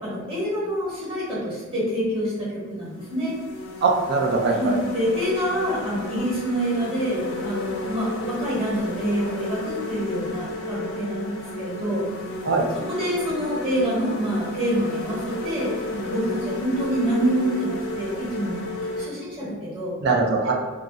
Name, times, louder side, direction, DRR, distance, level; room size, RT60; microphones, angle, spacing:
voice 1, 0.0-3.3 4.5-12.0 12.7-18.6 19.0-19.9 20.4-20.5, equal, 30° right, -8 dB, 1.2 m, -27 dB
sound 1, 2.1-2.3 2.9-19.0, left 2 dB, 70° left, 0.5 m, -33 dB
voice 2, 3.8-4.8 12.4-12.7 20.0-20.5, right 3 dB, 50° right, 0 dB, 0.5 m, -21 dB
3.0 x 2.4 x 2.5 m, 1.3 s
head